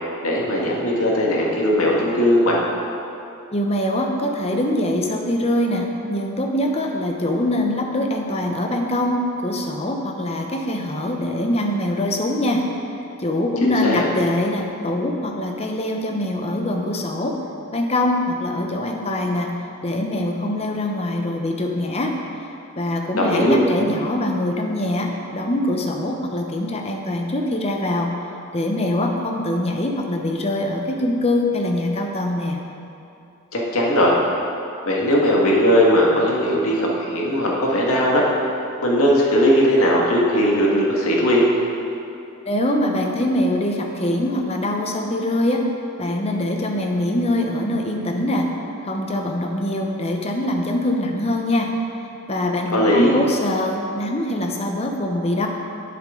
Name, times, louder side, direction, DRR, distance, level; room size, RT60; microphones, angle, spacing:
voice 1, 0.2-2.6 13.6-14.1 23.1-23.7 33.5-34.2 34.9-38.2 38.8-41.4 52.7-53.1, equal, 75° left, -3 dB, 1.8 m, -18 dB
voice 2, 3.5-12.6 13.2-17.4 17.7-19.5 19.8-22.1 22.8-28.1 28.5-32.6 42.5-45.7 46.0-48.5 48.8-51.7 52.3-55.5, left 1 dB, 30° left, 2 dB, 0.8 m, -23 dB
10.5 x 8.1 x 3.8 m, 2.8 s
head